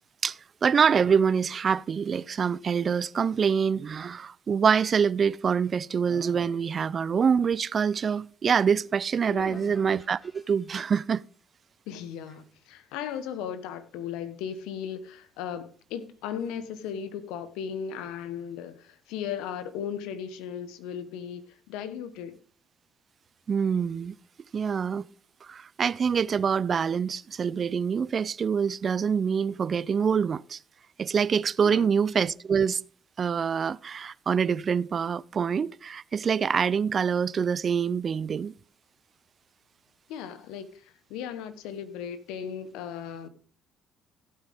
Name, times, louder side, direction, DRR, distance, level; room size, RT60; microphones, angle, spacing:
voice 1, 0.2-11.2 23.5-24.1 24.5-25.0 25.4-30.6 31.0-32.8 33.2-38.5, right 6 dB, 45° right, 0.5 m, -25 dB
voice 2, 9.3-9.7 11.9-21.4 21.7-22.4 31.6-31.9 40.1-43.3, left 8 dB, 80° left, 1.2 m, -36 dB
sound 1, 9.4-11.5, equal, 5° left, 3.8 m, -52 dB
15.0 x 8.8 x 3.6 m
supercardioid pair, 65°, 0 cm